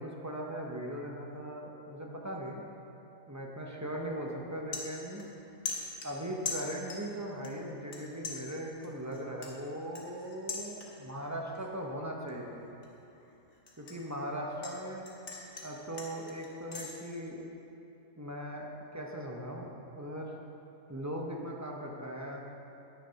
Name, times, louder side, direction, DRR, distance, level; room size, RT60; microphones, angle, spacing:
voice 1, 0.0-2.6 3.3-5.2 6.0-12.6 13.8-15.0 15.6-17.4 18.2-18.7 18.9-20.3 20.9-22.4, equal, 20° right, -1 dB, 0.5 m, -39 dB
sound 1, 3.8-4.0 4.4-5.4 5.7-7.1 7.4-8.0 8.2-11.2 11.5-11.9 12.3-14.8 15.0-16.9, left 4 dB, 65° left, 1.6 m, -41 dB
9.3 x 6.6 x 5.6 m, 2.9 s
omnidirectional pair, 1.5 m